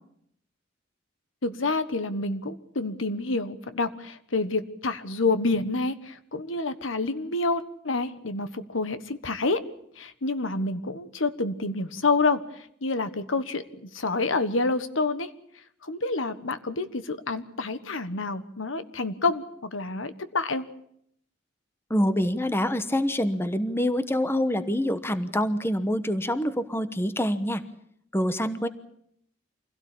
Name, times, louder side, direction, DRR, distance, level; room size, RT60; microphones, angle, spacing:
voice 1, 1.4-9.6 10.0-12.4 12.8-15.3 15.8-20.7, left 3 dB, 75° left, 12 dB, 1.4 m, -28 dB
voice 2, 21.9-27.6 28.1-28.7, equal, 10° left, 12 dB, 1.1 m, -26 dB
25.5 x 17.0 x 8.6 m, 0.71 s
head